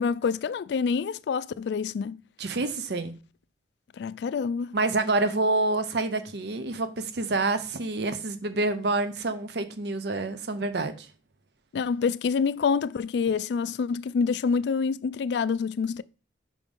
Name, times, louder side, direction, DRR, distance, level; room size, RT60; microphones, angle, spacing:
voice 1, 0.0-2.2 4.0-4.8 11.7-16.0, left 5 dB, 65° left, 0.3 m, -27 dB
voice 2, 2.4-3.2 4.7-11.1, right 2 dB, 60° right, 0.7 m, -27 dB
5.2 x 5.1 x 5.3 m
head